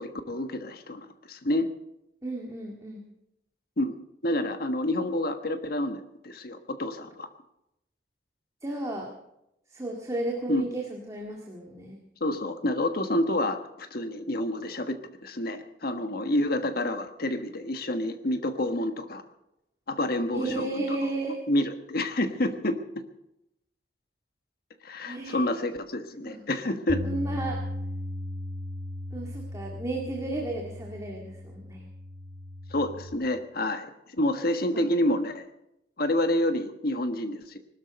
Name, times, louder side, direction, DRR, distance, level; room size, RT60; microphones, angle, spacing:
voice 1, 0.0-1.7 3.8-4.0 4.2-7.3 10.5-10.7 12.2-19.2 19.9-21.0 21.5-22.8 24.8-27.0 32.7-35.5 36.0-37.6, left 1 dB, 60° left, 7 dB, 1.4 m, -28 dB
voice 2, 2.2-3.0 8.6-9.1 9.7-12.0 20.3-21.4 25.0-25.4 26.2-26.4 27.0-27.6 29.1-31.9 34.7-35.0, right 2 dB, 20° right, -1 dB, 2.0 m, -33 dB
Bass guitar, 26.9-33.1, left 1 dB, 75° right, 2.3 m, -37 dB
20.5 x 12.5 x 5.3 m, 0.86 s
head